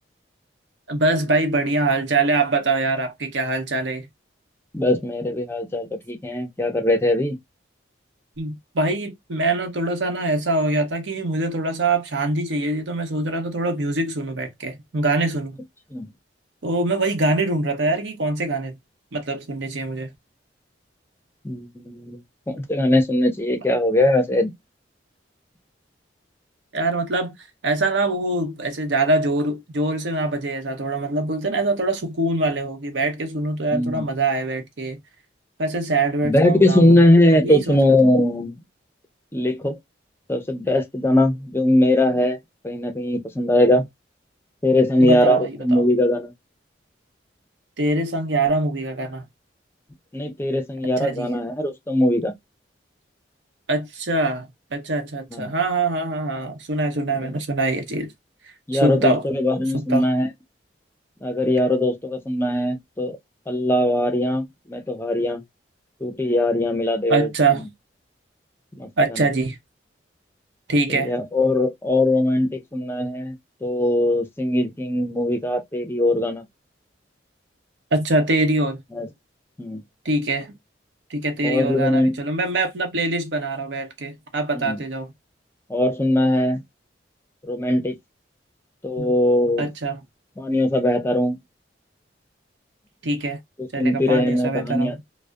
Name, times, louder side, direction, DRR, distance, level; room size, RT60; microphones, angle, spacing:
voice 1, 0.9-4.1 8.4-15.6 16.6-18.8 19.1-20.1 26.7-27.4 27.6-35.0 35.6-37.1 37.4-37.8 45.0-45.8 47.8-49.2 51.0-51.3 53.7-58.1 58.7-59.2 59.7-60.1 67.1-67.6 69.0-69.6 70.7-71.1 77.9-78.8 80.0-80.5 81.1-85.1 89.0-89.1 89.6-90.0 93.0-93.4 93.7-95.0, right 2 dB, 75° right, 0.7 m, -23 dB
voice 2, 4.7-7.4 15.9-16.1 21.4-22.2 22.5-24.5 33.7-34.1 36.2-38.5 39.3-39.8 40.3-42.4 42.6-43.8 44.6-46.3 50.1-52.3 55.3-55.5 57.2-57.3 58.7-60.3 61.2-63.2 63.5-65.4 66.0-67.3 68.8-68.9 70.9-73.3 73.6-76.5 78.9-79.1 79.6-79.8 81.4-82.2 84.5-84.8 85.7-86.6 87.4-88.0 88.8-89.7 90.4-91.4 93.6-94.9, left 1 dB, 15° left, 0.5 m, -20 dB
2.6 x 2.0 x 2.3 m
head